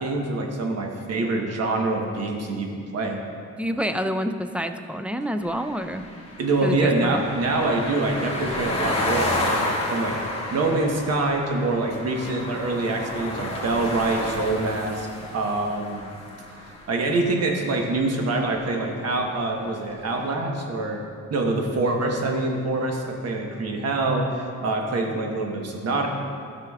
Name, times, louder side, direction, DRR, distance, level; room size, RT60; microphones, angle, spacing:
voice 1, 0.0-3.2 6.4-10.2 10.5-16.0 16.9-21.0 21.3-26.1, right 2 dB, 55° right, 2 dB, 1.1 m, -25 dB
voice 2, 3.6-6.0 6.6-7.2, equal, 5° right, 8 dB, 0.3 m, -28 dB
sound 1, 5.4-17.5, left 1 dB, 20° left, 1.9 m, -31 dB
13.0 x 5.9 x 2.4 m, 2.3 s
cardioid pair, 90°, 30 cm